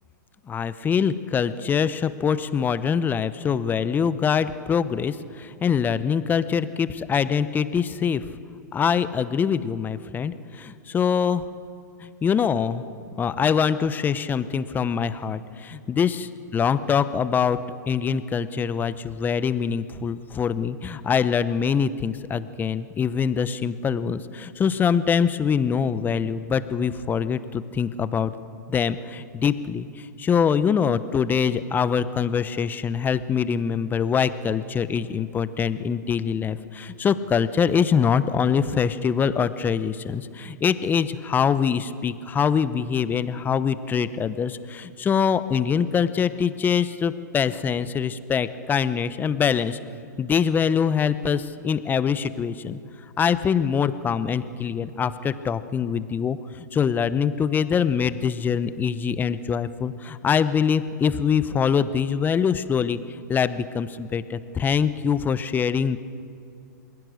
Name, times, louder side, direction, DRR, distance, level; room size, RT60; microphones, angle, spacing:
voice 1, 0.5-8.3 8.7-11.4 12.0-12.8 13.2-17.6 17.9-28.3 28.7-49.8 50.2-52.8 53.2-63.0 63.3-66.0, left 7 dB, 20° left, 14 dB, 0.9 m, -24 dB
27.5 x 21.0 x 6.5 m, 2.5 s
hypercardioid pair, 110°, 10 cm